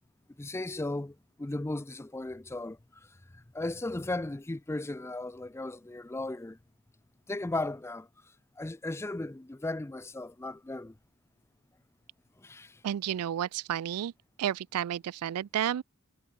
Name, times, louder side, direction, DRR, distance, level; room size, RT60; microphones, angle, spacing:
voice 1, 0.4-2.8 3.3-6.6 7.3-8.1 8.6-11.0 12.4-12.8, left 2 dB, 10° left, 0.4 m, -36 dB
voice 2, 12.8-14.1 14.4-15.8, right 10 dB, 85° right, 0.3 m, -31 dB
head